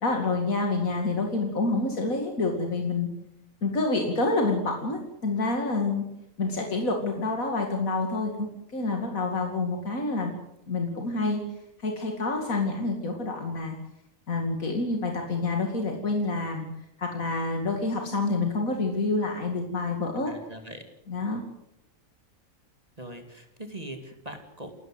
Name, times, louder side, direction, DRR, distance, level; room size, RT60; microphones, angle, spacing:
voice 1, 0.0-3.1 3.6-6.0 6.4-10.3 10.7-11.4 11.8-13.8 14.3-16.6 17.0-20.3 21.1-21.4, left 3 dB, 90° left, 2 dB, 2.9 m, -28 dB
voice 2, 20.2-20.8 23.0-24.7, right 1 dB, 30° right, 5 dB, 2.6 m, -41 dB
29.0 x 14.0 x 7.9 m, 0.84 s
omnidirectional pair, 1.4 m